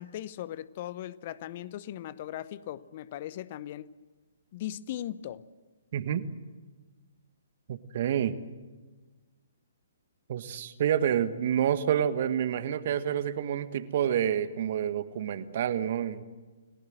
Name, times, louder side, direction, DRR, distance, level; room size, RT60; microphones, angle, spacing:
voice 1, 0.0-3.9 4.5-5.5, left 12 dB, 40° left, 0.8 m, -38 dB
voice 2, 5.9-6.2 7.7-8.3 10.3-16.2, right 9 dB, 50° right, 1.5 m, -28 dB
30.0 x 18.5 x 7.8 m
figure-of-eight pair, 125°, 0 cm